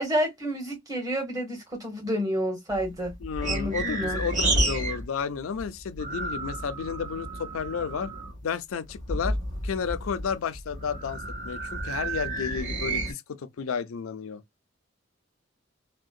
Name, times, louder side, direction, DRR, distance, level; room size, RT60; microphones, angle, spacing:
voice 1, 0.0-3.1 3.5-4.2, equal, 20° right, 1.3 m, -29 dB
sound 1, 2.7-5.0 5.3-8.4 8.9-13.1, right 2 dB, 35° right, 2.0 m, -31 dB
voice 2, 3.2-8.1 8.4-9.4 9.6-14.4, left 6 dB, 85° left, 0.4 m, -32 dB
3.6 x 2.1 x 2.4 m
head